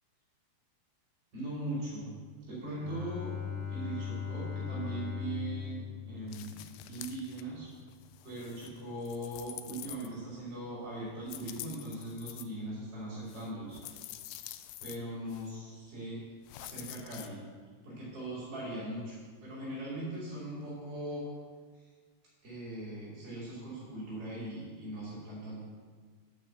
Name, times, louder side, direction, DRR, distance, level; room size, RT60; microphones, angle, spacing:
voice 1, 1.3-2.1 2.4-3.3 3.7-7.7 8.2-13.8 14.8-16.2 16.6-17.4 17.8-21.2 21.7-21.9 22.4-25.6, right 1 dB, 35° right, -8 dB, 3.2 m, -40 dB
Bowed string instrument, 2.6-7.1, left 7 dB, 65° right, 1.6 m, -39 dB
sound 1, 6.3-7.4 7.8-10.4 11.2-12.4 13.3-15.0 15.3-15.5 16.5-17.3, left 13 dB, 85° left, 2.3 m, -47 dB
8.3 x 6.1 x 7.9 m, 1.5 s
omnidirectional pair, 5.1 m